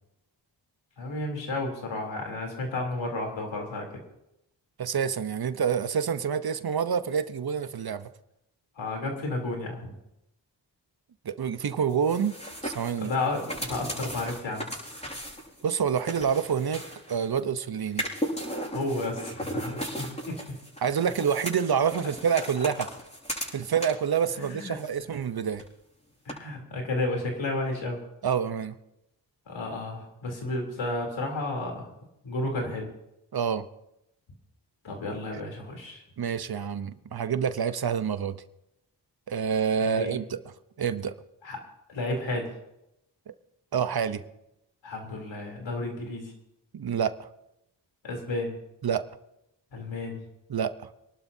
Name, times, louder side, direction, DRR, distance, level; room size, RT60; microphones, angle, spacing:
voice 1, 1.0-3.9 8.8-9.9 13.0-14.7 18.7-20.4 24.4-24.8 26.3-28.0 29.5-31.9 32.2-32.9 34.8-36.0 39.8-40.2 41.4-41.6 41.9-42.5 44.8-46.3 48.0-48.5 49.7-50.2, left 2 dB, 80° left, 1 dB, 3.5 m, -32 dB
voice 2, 4.8-8.1 11.2-12.4 12.6-13.1 15.6-16.8 17.1-18.0 20.8-22.9 23.5-25.6 28.2-28.8 33.3-33.6 36.2-38.4 39.3-40.4 40.8-41.1 43.7-44.2 46.7-47.3 48.8-49.0 50.5-50.7, right 7 dB, 55° right, 12 dB, 0.9 m, -27 dB
sound 1, 11.9-17.4 17.9-24.1 24.4-25.3 25.5-25.6 26.3-26.4, equal, 15° left, 7.0 m, -37 dB
26.0 x 12.0 x 2.8 m, 0.86 s
cardioid pair, 50°, 44 cm